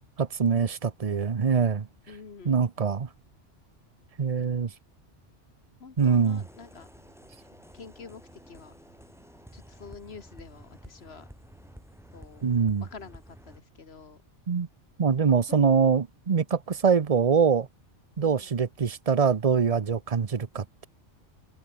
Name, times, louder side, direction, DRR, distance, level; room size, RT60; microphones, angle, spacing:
voice 1, 0.2-1.9 2.4-3.1 4.2-4.7 6.0-6.4 12.4-12.8 14.5-14.7 15.0-17.7 18.2-20.9, right 6 dB, 35° right, 0.8 m, -24 dB
voice 2, 2.1-2.6 5.8-7.1 7.7-8.7 9.5-11.3 12.1-12.5 12.8-14.2 15.2-15.7 18.3-18.5, left 5 dB, 60° left, 2.0 m, -47 dB
sound 1, 6.0-13.6, equal, ahead, 2.5 m, -51 dB
omnidirectional pair, 1.2 m